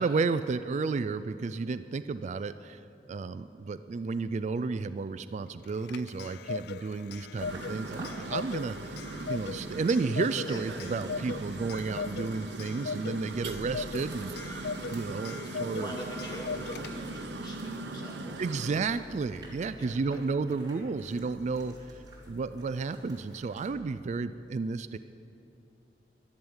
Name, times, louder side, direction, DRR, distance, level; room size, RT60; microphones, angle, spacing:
voice 1, 0.0-2.8 3.1-9.0 9.3-15.9 18.4-25.0, right 4 dB, 40° right, 12 dB, 0.3 m, -32 dB
Clock, 5.6-17.3, left 5 dB, 65° left, 0.4 m, -40 dB
sound 1, 7.4-23.7, equal, 25° right, 3.2 m, -51 dB
sound 2, 7.4-18.9, right 2 dB, 75° right, 0.8 m, -40 dB
voice 2, 10.4-10.9 15.4-18.6 19.8-20.2 21.9-22.0, equal, 25° left, -2 dB, 2.8 m, -43 dB
12.0 x 11.0 x 8.8 m, 2.7 s
head